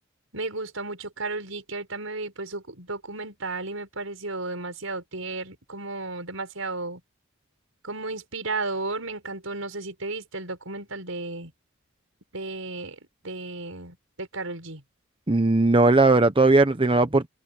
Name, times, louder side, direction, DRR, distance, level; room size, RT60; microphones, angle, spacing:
voice 1, 0.3-7.0 7.8-11.5 12.3-12.9 13.2-14.8, right 3 dB, 75° right, 6.6 m, -34 dB
voice 2, 15.3-17.3, right 2 dB, 25° right, 0.9 m, -18 dB
head